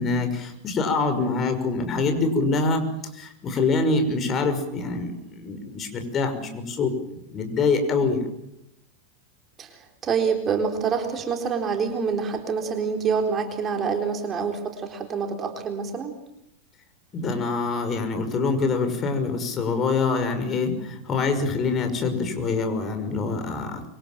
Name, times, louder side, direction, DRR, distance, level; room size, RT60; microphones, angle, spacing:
voice 1, 0.0-2.8 3.1-6.9 7.3-8.2 17.1-23.9, left 4 dB, 25° left, 7 dB, 5.9 m, -25 dB
voice 2, 9.6-16.1, right 6 dB, 25° right, 4 dB, 3.9 m, -26 dB
26.5 x 24.5 x 7.6 m, 0.81 s
figure-of-eight pair, 90°, 0 cm